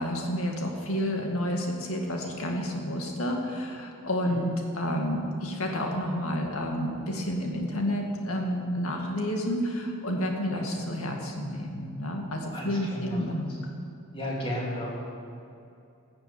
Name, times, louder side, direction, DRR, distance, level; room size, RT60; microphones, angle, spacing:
voice 1, 0.0-13.6, equal, 75° left, 1 dB, 2.1 m, -30 dB
voice 2, 12.5-13.2 13.5-13.6 14.1-14.9, left 1 dB, 25° left, -4 dB, 3.2 m, -34 dB
13.5 x 7.2 x 8.7 m, 2.6 s
head